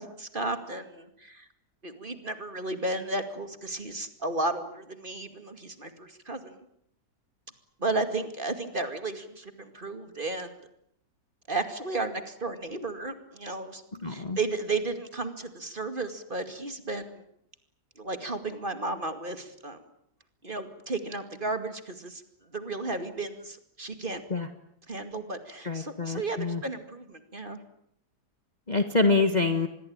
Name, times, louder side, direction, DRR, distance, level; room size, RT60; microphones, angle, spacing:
voice 1, 0.0-1.5 1.8-6.6 7.8-10.6 11.5-13.8 14.1-17.2 18.0-19.8 20.4-22.2 22.5-24.2 24.9-27.6, right 2 dB, 30° right, 9 dB, 2.5 m, -33 dB
voice 2, 14.0-14.4 24.3-24.5 25.6-26.6 28.7-29.7, left 3 dB, 25° left, 7 dB, 1.6 m, -26 dB
25.5 x 21.5 x 8.9 m, 0.74 s
omnidirectional pair, 1.8 m